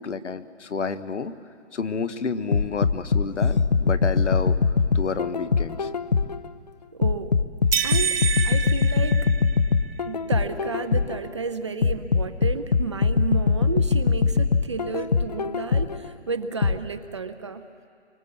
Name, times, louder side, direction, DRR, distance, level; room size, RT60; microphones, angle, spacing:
voice 1, 0.0-1.3 1.7-4.6 4.9-5.9, left 5 dB, 75° left, 12 dB, 1.4 m, -30 dB
sound 1, 2.5-6.5 7.0-11.3 11.8-16.1 16.6-16.8, left 5 dB, 35° left, 0.5 m, -22 dB
voice 2, 6.9-7.4 7.8-9.2 10.1-17.6, right 4 dB, 25° right, 9 dB, 0.6 m, -32 dB
sound 2, 7.7-9.9, right 7 dB, 50° right, 1.3 m, -27 dB
25.0 x 24.0 x 7.1 m, 2.5 s
hypercardioid pair, 155°, 36 cm